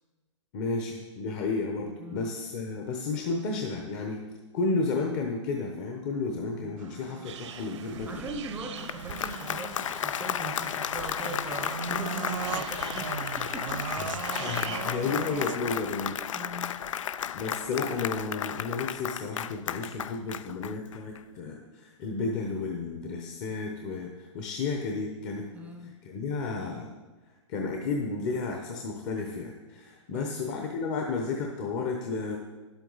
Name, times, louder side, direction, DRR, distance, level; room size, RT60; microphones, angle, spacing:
voice 1, 0.5-4.2 4.5-8.2 14.0-14.1 14.4-16.2 16.5-16.9 17.3-25.5 26.0-26.9 27.5-32.4, left 4 dB, 35° left, 2 dB, 0.9 m, -32 dB
voice 2, 2.0-2.3 6.6-6.9 7.4-7.5 7.9-13.9 14.4-14.5 16.3-16.9 25.5-26.0 30.1-30.5, right 2 dB, 10° right, 4 dB, 0.6 m, -41 dB
sound 1, 6.8-15.8, right 8 dB, 85° right, 0.4 m, -39 dB
sound 2, 7.2-16.0, right 9 dB, 70° right, 0.8 m, -45 dB
Applause, 8.6-21.2, left 9 dB, 85° left, 0.4 m, -34 dB
10.5 x 8.1 x 4.0 m, 1.2 s
hypercardioid pair, 140°, 16 cm